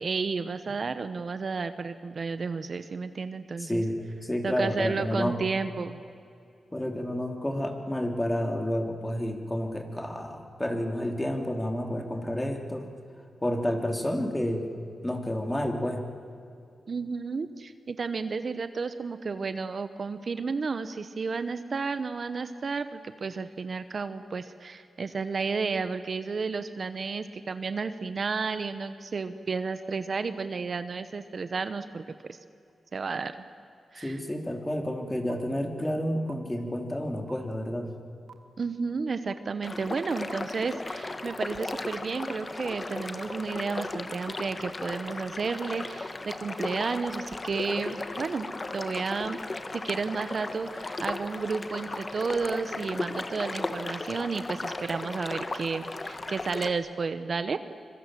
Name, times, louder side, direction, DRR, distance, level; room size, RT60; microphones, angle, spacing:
voice 1, 0.0-3.8 4.4-6.0 16.9-32.4 32.9-33.4 33.9-34.2 38.6-49.4 49.7-57.6, right 4 dB, 55° right, 11 dB, 1.0 m, -32 dB
voice 2, 3.6-5.4 6.7-12.9 13.4-14.7 15.0-16.0 33.9-37.9, left 1 dB, 15° left, 4 dB, 3.2 m, -30 dB
sound 1, 35.3-35.4 36.3-36.4 37.3-37.4 38.3-38.4 39.3-39.4 40.3-40.4 41.3-41.4 42.3-42.4 43.3-43.4 44.3-44.4, right 7 dB, 80° right, 2.0 m, -46 dB
sound 2, 39.6-56.7, left 2 dB, 30° left, 1.3 m, -36 dB
25.0 x 23.0 x 7.7 m, 2.5 s
cardioid pair, 85°, 0 cm